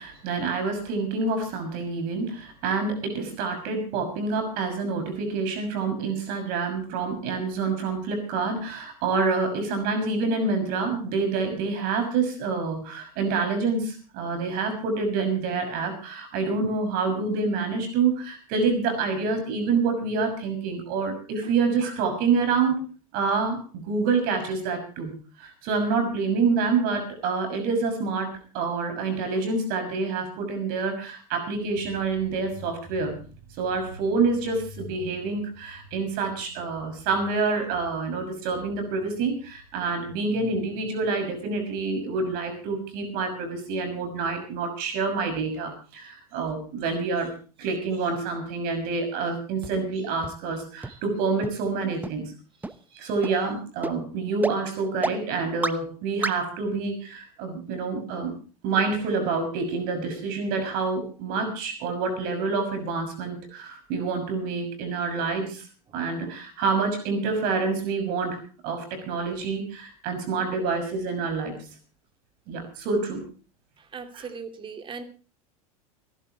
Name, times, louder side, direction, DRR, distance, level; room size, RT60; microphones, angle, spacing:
voice 1, 0.0-22.8 23.1-25.1 25.4-33.2 33.6-47.3 47.6-52.2 52.9-58.3 58.6-65.6 65.9-71.5 72.5-73.2 74.2-74.3, right 4 dB, 50° right, 7 dB, 6.3 m, -27 dB
sound 1, 49.6-49.7 50.2-50.3 50.8-50.9 51.4-51.5 52.0-52.1 52.6-52.7 53.2-53.3 53.8-53.9 54.4-54.5 55.0-55.1 55.6-55.7 56.2-56.3, right 2 dB, 10° right, 1.1 m, -28 dB
voice 2, 73.8-75.0, right 5 dB, 25° right, 7 dB, 2.9 m, -39 dB
29.5 x 11.5 x 3.1 m, 0.37 s
hypercardioid pair, 90°, 19 cm